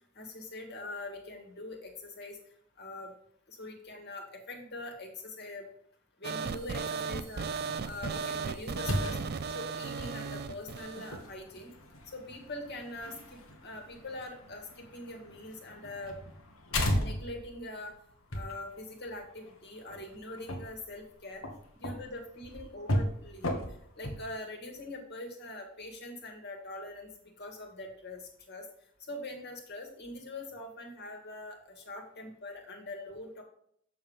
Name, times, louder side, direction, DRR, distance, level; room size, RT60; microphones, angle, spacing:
voice 1, 0.2-2.4 2.8-3.1 3.5-5.7 6.2-7.5 7.8-9.2 9.5-11.7 12.1-16.2 16.9-17.9 18.3-21.4 21.8-23.6 24.0-27.1 27.4-28.7 29.1-33.4, left 2 dB, 55° left, 2 dB, 2.0 m, -43 dB
sound 1, 6.2-11.2, right 5 dB, 50° right, 0.5 m, -36 dB
sound 2, 7.1-24.2, left 1 dB, 85° left, 1.5 m, -37 dB
7.2 x 6.6 x 3.6 m, 0.67 s
head